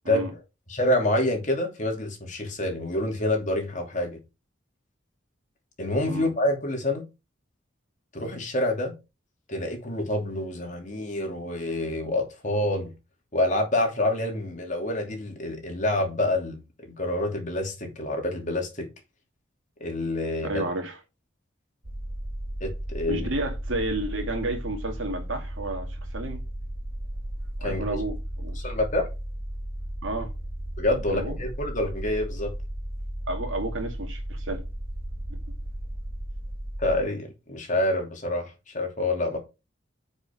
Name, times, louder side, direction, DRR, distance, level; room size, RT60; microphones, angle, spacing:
voice 1, 0.7-4.2 5.8-7.0 8.1-8.9 9.5-12.9 13.3-18.9 19.8-20.6 22.6-23.3 27.6-28.0 28.6-29.1 30.8-32.5 36.8-39.4, left 1 dB, 40° left, 2.9 m, -27 dB
voice 2, 20.4-21.0 23.1-26.4 27.6-28.6 30.0-30.3 31.1-31.3 33.3-34.6, right 2 dB, 80° right, 2.4 m, -31 dB
sound 1, 21.8-37.0, right 1 dB, 50° right, 1.7 m, -35 dB
8.9 x 5.4 x 4.8 m
head